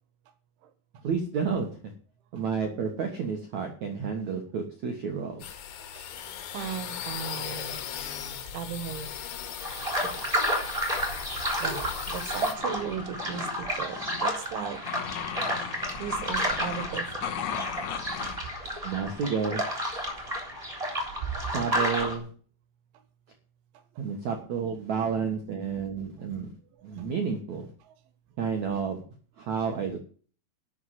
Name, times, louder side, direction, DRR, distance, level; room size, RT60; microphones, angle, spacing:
voice 1, 1.0-1.7 2.3-5.4 18.8-19.6 21.5-22.3 24.0-26.5 26.8-27.7 28.4-29.0 29.4-30.0, right 6 dB, 60° right, 3 dB, 2.0 m, -30 dB
sound 1, 5.4-12.6, left 9 dB, 90° left, 4.1 m, -38 dB
voice 2, 5.9-7.8 8.2-9.1 9.7-10.3 11.6-14.8 16.0-17.1 18.2-18.3 21.3-21.5, right 9 dB, 90° right, 9 dB, 3.8 m, -37 dB
sound 2, 9.6-22.1, equal, 10° right, 2.9 m, -31 dB
sound 3, 12.6-18.4, left 9 dB, 70° left, 1.8 m, -37 dB
12.0 x 6.5 x 8.9 m, 0.41 s
omnidirectional pair, 5.3 m